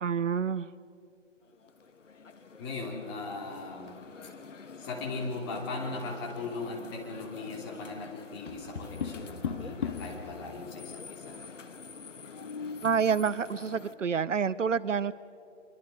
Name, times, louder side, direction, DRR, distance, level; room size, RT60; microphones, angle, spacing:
voice 1, 0.0-0.7 12.8-15.1, right 6 dB, 70° right, 17 dB, 0.7 m, -28 dB
sound 1, 1.4-13.9, left 5 dB, 70° left, 1.5 m, -47 dB
voice 2, 2.6-4.0 4.8-11.4, left 3 dB, 20° left, -1 dB, 2.9 m, -38 dB
Tap, 8.5-10.2 12.2-12.9, left 6 dB, 40° left, 1.9 m, -36 dB
25.5 x 23.5 x 5.1 m, 2.6 s
figure-of-eight pair, 155°, 39 cm